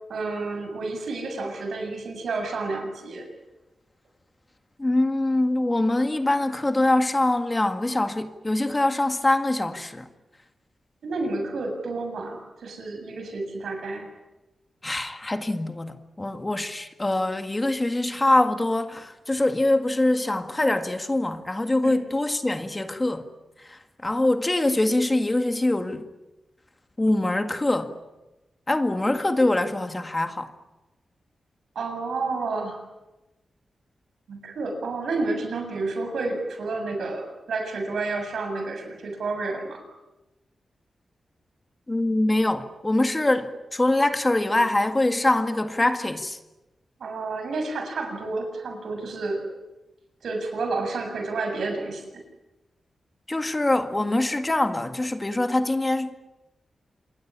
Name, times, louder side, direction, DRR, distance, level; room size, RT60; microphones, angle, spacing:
voice 1, 0.1-3.2 11.0-14.1 21.8-22.0 31.8-32.8 34.3-39.8 47.0-49.4 50.2-52.2, right 3 dB, 85° right, 7.5 m, -30 dB
voice 2, 4.8-10.1 14.8-23.2 23.6-26.0 27.0-28.0 28.7-30.5 41.9-46.4 53.3-56.2, left 2 dB, 20° left, 1.9 m, -24 dB
27.5 x 20.5 x 10.0 m
wide cardioid pair, 120°, 0 cm